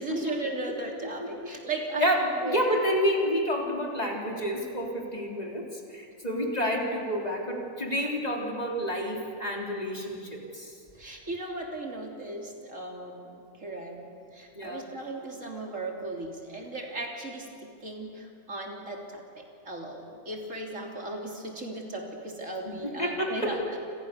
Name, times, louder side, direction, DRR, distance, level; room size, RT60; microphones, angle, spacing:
voice 1, 0.0-2.8 11.0-23.8, right 2 dB, 70° right, 0 dB, 3.9 m, -37 dB
voice 2, 2.0-10.7 14.6-14.9 22.7-23.6, equal, 30° left, -1 dB, 3.8 m, -29 dB
29.0 x 28.0 x 6.8 m, 2.4 s
omnidirectional pair, 1.3 m